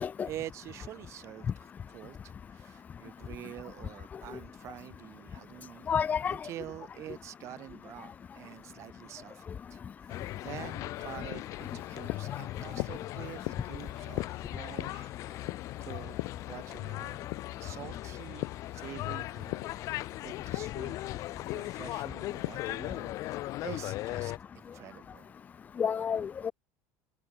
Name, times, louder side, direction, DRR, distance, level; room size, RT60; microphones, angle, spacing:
voice 1, 0.2-5.9 6.3-16.2 16.5-17.3 17.6-21.0 21.5-25.3, right 13 dB, 40° right, 5.1 m, -47 dB
voice 2, 5.9-6.4 25.8-26.5, left 7 dB, 20° left, 0.8 m, -29 dB
sound 1, 10.1-24.4, left 17 dB, 45° left, 1.8 m, -38 dB
sound 2, 11.3-18.7 19.0-22.8, left 40 dB or more, 70° left, 2.6 m, -41 dB
cardioid pair, 155°, 7 cm